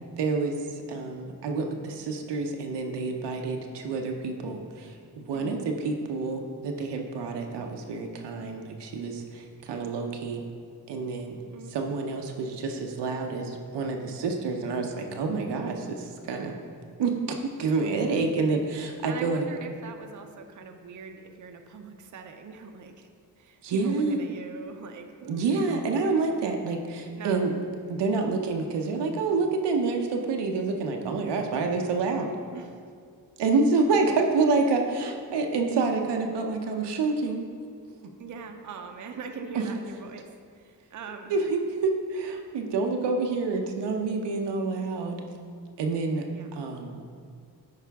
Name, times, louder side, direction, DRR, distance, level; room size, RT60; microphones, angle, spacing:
voice 1, 0.2-10.4 10.9-11.4 11.7-16.5 17.0-19.5 23.6-24.2 25.3-27.5 27.9-32.3 33.4-37.4 39.5-39.6 41.3-45.2 45.8-46.2 46.5-47.0, right 3 dB, 90° right, 3 dB, 0.8 m, -28 dB
voice 2, 19.0-23.1 23.4-26.3 27.1-27.5 32.5-32.8 38.2-40.3 40.5-41.3 46.3-46.5, right 5 dB, 45° right, 5 dB, 0.6 m, -42 dB
9.3 x 4.9 x 3.5 m, 2.2 s
cardioid pair, 90°, 40 cm